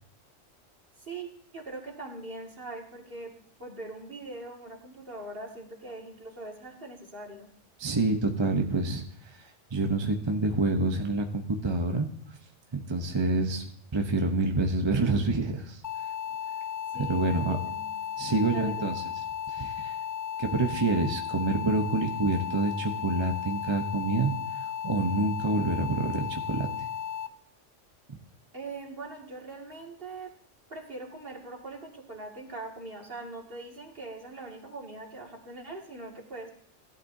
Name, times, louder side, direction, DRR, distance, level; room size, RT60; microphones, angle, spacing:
voice 1, 1.0-3.3 3.6-7.5 16.9-17.9 18.5-18.8 28.5-30.3 30.7-36.5, right 2 dB, 50° right, 0 dB, 2.3 m, -42 dB
voice 2, 7.8-12.1 12.7-13.6 13.9-15.8 17.1-17.6 18.2-18.9 19.5-20.0 20.4-26.7 28.1-28.2, right 2 dB, 25° right, 3 dB, 0.8 m, -27 dB
sound 1, 15.8-27.3, left 8 dB, 55° left, 0.5 m, -35 dB
16.5 x 11.5 x 2.7 m, 0.67 s
omnidirectional pair, 1.3 m